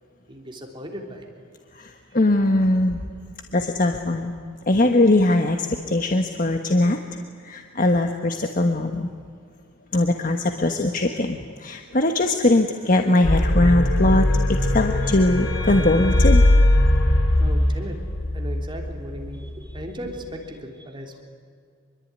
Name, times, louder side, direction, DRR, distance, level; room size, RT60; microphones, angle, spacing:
voice 1, 0.3-1.2 15.0-15.2 17.4-18.0 18.3-21.2, equal, 25° right, 1 dB, 3.4 m, -37 dB
voice 2, 1.8-3.0 3.5-4.3 4.7-7.0 7.4-9.1 9.9-16.4, left 2 dB, 45° left, 4 dB, 1.4 m, -21 dB
sound 1, 13.2-19.9, left 1 dB, 80° left, 2.7 m, -20 dB
Wind instrument woodwind instrument, 14.3-18.2, left 4 dB, 20° left, 2.0 m, -35 dB
26.0 x 22.5 x 9.6 m, 2.2 s
head